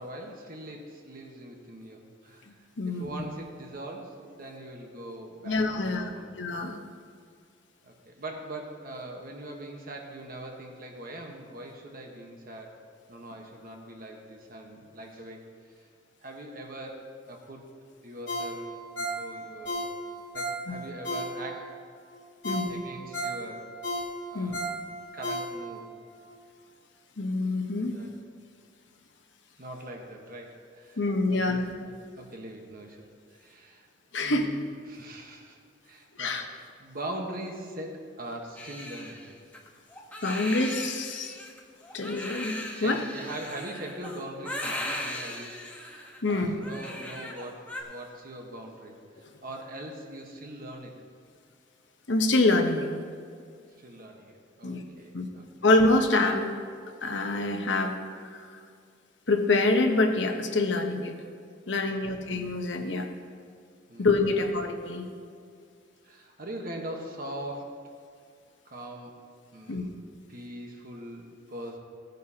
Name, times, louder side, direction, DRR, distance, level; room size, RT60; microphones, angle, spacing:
voice 1, 0.0-6.4 7.8-12.8 13.1-15.4 16.2-17.7 18.0-18.7 18.9-19.8 20.3-21.7 22.5-23.7 24.3-24.8 25.1-25.9 27.9-28.1 29.6-31.0 31.3-33.0 33.3-33.9 34.2-35.6 35.8-39.2 42.6-51.0 53.8-55.5 61.9-62.3 63.9-64.5 66.0-67.7 68.6-69.1 69.5-70.0 70.3-71.8, right 1 dB, 50° right, 1 dB, 1.2 m, -42 dB
voice 2, 2.8-3.1 5.4-6.1 6.4-6.8 20.7-20.8 22.4-22.7 24.3-24.6 27.2-27.9 31.0-31.7 34.1-34.5 36.2-36.4 40.2-41.3 41.9-42.5 42.8-43.0 46.2-46.6 52.1-52.9 54.6-54.8 55.1-55.3 55.6-56.5 57.0-57.9 58.3-58.5 59.3-61.1 61.7-63.1 64.0-65.1 69.7-69.8, left 2 dB, 65° left, 4 dB, 1.0 m, -26 dB
Ringtone, 18.3-21.7 22.1-22.2 22.4-25.9 26.3-26.4, right 1 dB, 85° left, 3.1 m, -34 dB
Crying sobbing, 38.6-47.8, left 1 dB, 10° left, 1.1 m, -38 dB
16.5 x 9.3 x 2.9 m, 2.2 s
head